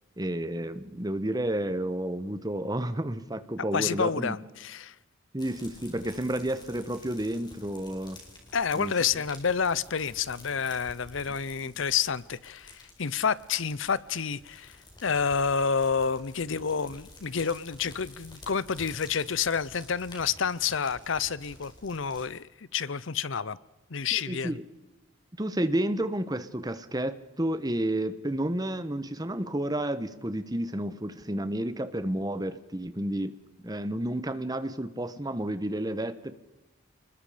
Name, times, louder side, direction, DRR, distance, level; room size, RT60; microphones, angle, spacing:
voice 1, 0.2-4.4 5.3-8.2 8.7-8.9 24.1-24.6 25.3-33.3 33.6-36.3, right 1 dB, 20° right, 1.1 m, -31 dB
voice 2, 3.7-4.9 8.5-23.6 23.9-24.6, left 6 dB, 70° left, 0.7 m, -29 dB
sound 1, 5.4-22.2, left 2 dB, 20° left, 4.7 m, -51 dB
28.5 x 21.0 x 5.0 m
head